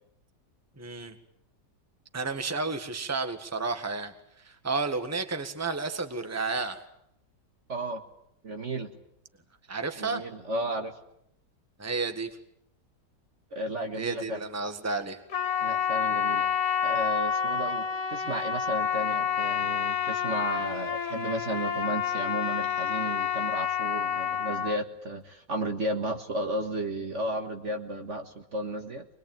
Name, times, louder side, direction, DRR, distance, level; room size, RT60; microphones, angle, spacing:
voice 1, 0.8-1.2 2.1-6.8 9.7-10.2 11.8-12.4 13.9-15.2, right 3 dB, 10° right, 7 dB, 1.6 m, -32 dB
voice 2, 7.7-8.0 8.4-9.0 10.0-10.9 13.5-14.4 15.6-16.5 16.8-29.1, right 1 dB, 45° right, 5 dB, 1.9 m, -33 dB
Trumpet, 15.3-24.8, left 8 dB, 65° left, 2.1 m, -29 dB
25.0 x 21.0 x 9.1 m, 0.76 s
omnidirectional pair, 1.9 m